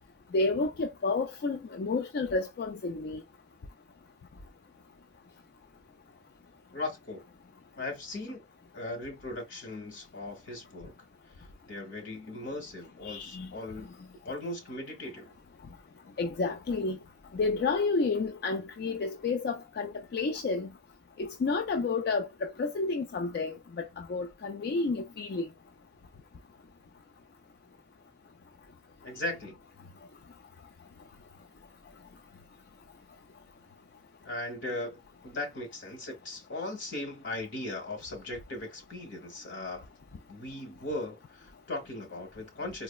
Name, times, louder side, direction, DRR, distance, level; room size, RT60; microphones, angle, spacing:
voice 1, 0.3-3.2 13.0-13.5 16.2-17.0 17.3-20.7 21.2-25.5, left 3 dB, 60° left, 0.4 m, -30 dB
voice 2, 6.7-7.2 7.8-8.4 8.7-10.9 11.7-13.9 14.2-15.4 29.0-29.6 34.2-39.9 40.3-42.8, left 2 dB, 85° left, 1.4 m, -38 dB
3.9 x 2.0 x 2.3 m
head